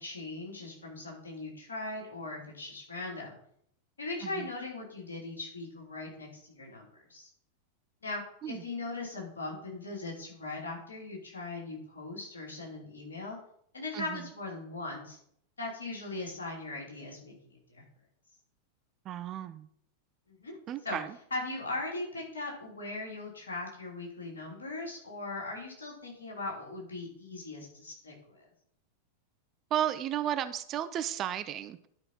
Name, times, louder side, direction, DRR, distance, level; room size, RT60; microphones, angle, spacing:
voice 1, 0.0-3.4 4.0-7.3 8.0-13.4 13.7-15.2 15.6-17.8 20.3-20.5 20.8-21.0 21.3-28.5, left 2 dB, 70° left, -2 dB, 3.2 m, -39 dB
voice 2, 19.1-19.7 20.7-21.2 29.7-31.9, right 10 dB, 30° right, 12 dB, 0.6 m, -33 dB
11.5 x 5.4 x 4.2 m, 0.67 s
figure-of-eight pair, 90°, 0 cm